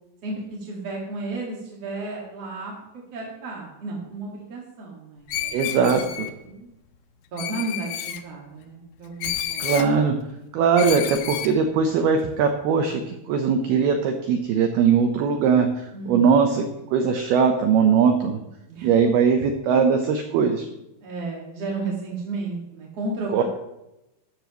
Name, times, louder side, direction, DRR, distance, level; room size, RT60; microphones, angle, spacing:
voice 1, 0.2-6.1 6.4-6.7 7.3-9.8 15.9-16.3 18.7-18.9 21.0-23.4, right 3 dB, 50° right, -2 dB, 2.0 m, -33 dB
Screech, 5.3-6.3 7.4-8.2 9.2-9.9 10.8-11.5, left 10 dB, 90° left, 2.3 m, -30 dB
voice 2, 5.5-6.3 9.6-10.2 10.5-15.7 16.1-16.6 16.9-18.4 18.8-20.7 23.3-23.4, right 6 dB, 80° right, 5 dB, 2.3 m, -20 dB
14.0 x 13.5 x 3.1 m, 0.93 s
omnidirectional pair, 5.7 m